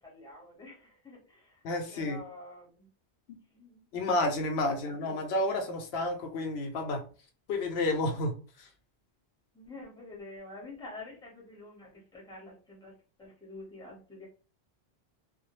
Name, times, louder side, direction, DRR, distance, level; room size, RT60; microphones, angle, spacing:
voice 1, 0.0-1.6 1.9-2.9 3.5-3.8 4.7-5.3 9.5-12.9 13.2-14.3, left 2 dB, 5° left, -3 dB, 0.8 m, -48 dB
voice 2, 1.6-2.2 3.9-7.0 7.5-8.7, left 2 dB, 75° left, 5 dB, 0.8 m, -30 dB
2.2 x 2.1 x 2.9 m, 0.37 s
omnidirectional pair, 1.1 m